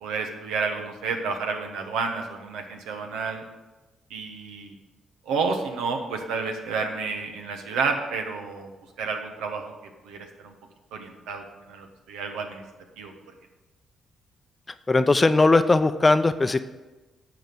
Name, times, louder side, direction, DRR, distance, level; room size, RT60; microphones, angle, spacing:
voice 1, 0.0-3.4 4.1-4.7 5.3-8.7 9.0-9.7 10.0-10.5 10.9-12.6 13.0-13.1, right 4 dB, 80° right, 4 dB, 1.1 m, -30 dB
voice 2, 14.9-16.6, left 3 dB, 30° left, 12 dB, 0.6 m, -19 dB
9.0 x 4.9 x 7.6 m, 1.2 s
supercardioid pair, 50°, 0 cm